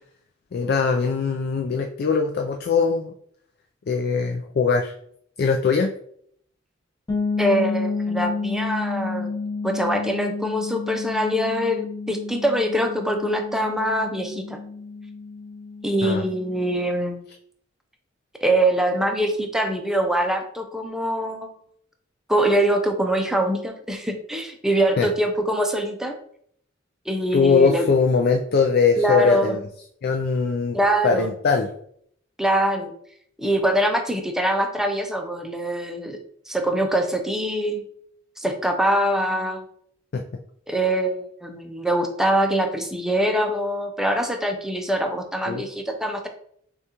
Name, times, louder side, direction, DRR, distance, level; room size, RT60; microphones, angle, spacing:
voice 1, 0.5-3.1 3.9-4.9 5.4-5.9 16.0-16.2 25.0-25.1 27.3-29.6 30.0-30.8 31.0-31.7 40.1-40.2 45.5-45.7, left 5 dB, 55° left, 3 dB, 0.4 m, -21 dB
sound 1, 7.1-16.8, left 4 dB, 20° left, 0.8 m, -30 dB
voice 2, 7.4-9.3 9.6-14.6 15.8-17.2 18.4-21.5 22.3-26.1 27.1-27.8 29.0-29.6 30.7-31.3 32.4-32.9 33.4-36.2 36.5-37.8 38.4-39.6 40.7-46.3, right 1 dB, 5° right, 4 dB, 0.5 m, -23 dB
6.2 x 2.3 x 2.9 m, 0.66 s
head